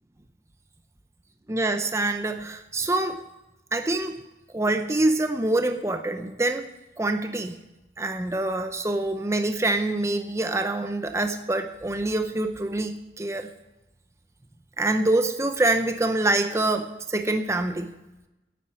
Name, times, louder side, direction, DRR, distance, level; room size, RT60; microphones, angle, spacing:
voice 1, 1.5-3.2 3.7-4.2 4.5-6.7 7.0-7.5 8.0-13.5 14.8-17.9, right 2 dB, 15° right, 7 dB, 0.6 m, -25 dB
9.5 x 8.7 x 9.6 m, 1.0 s
head